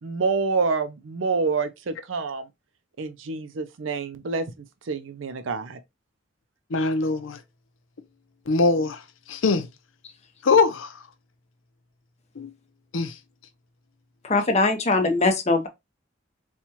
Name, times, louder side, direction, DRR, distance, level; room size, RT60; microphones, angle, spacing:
voice 1, 0.0-2.5 3.0-4.5 4.9-5.8, right 4 dB, 75° right, 0.5 m, -27 dB
voice 2, 6.7-7.4 8.5-9.0 9.3-9.7 10.4-11.0 12.4-12.5 12.9-13.1, left 4 dB, 85° left, 0.6 m, -22 dB
voice 3, 14.2-15.7, left 3 dB, 35° left, 0.8 m, -21 dB
4.3 x 2.3 x 2.8 m
head